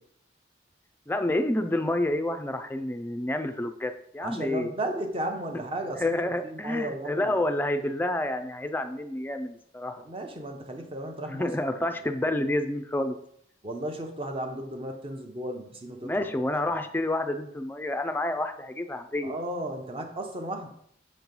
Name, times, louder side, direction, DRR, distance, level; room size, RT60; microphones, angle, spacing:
voice 1, 1.1-4.7 6.0-10.0 11.3-13.2 16.0-19.3, left 1 dB, 10° left, 7 dB, 0.4 m, -29 dB
voice 2, 4.2-7.4 7.7-7.9 10.0-11.5 11.8-11.9 13.6-16.3 16.7-16.8 19.2-20.7, right 1 dB, 30° right, 4 dB, 0.8 m, -35 dB
6.4 x 3.1 x 5.3 m, 0.68 s
head